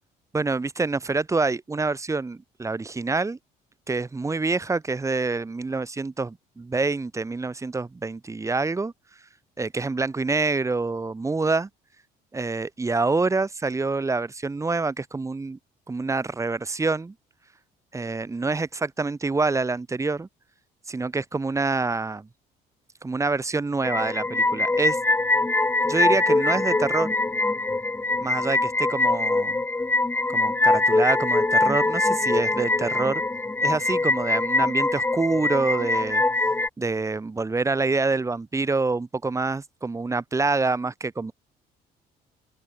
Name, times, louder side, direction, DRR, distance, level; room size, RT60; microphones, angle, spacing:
voice 1, 0.3-3.4 3.9-8.9 9.6-11.7 12.3-15.6 15.9-17.1 17.9-20.3 20.9-22.3 23.0-25.0 25.3-25.5 25.8-27.1 28.2-29.6 30.3-33.2 33.6-36.2 36.8-41.3, right 3 dB, 20° right, 1.8 m, -26 dB
sound 1, 23.8-36.7, left 2 dB, 10° left, 1.2 m, -23 dB
open air
cardioid pair, 110°, 17 cm